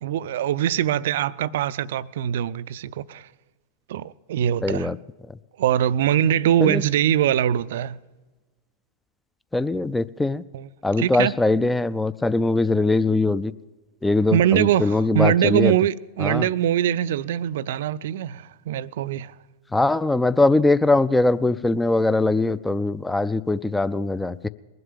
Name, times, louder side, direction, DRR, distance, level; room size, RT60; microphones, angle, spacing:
voice 1, 0.0-3.3 3.9-4.9 5.6-8.0 10.5-10.7 11.0-11.3 14.3-19.3, right 11 dB, 55° right, 0.4 m, -22 dB
voice 2, 4.6-5.0 6.6-6.8 9.5-10.4 10.8-13.5 14.0-15.7 16.2-16.5 19.7-24.5, left 2 dB, 5° left, 0.4 m, -21 dB
21.0 x 7.8 x 7.3 m
figure-of-eight pair, 90°, 0 cm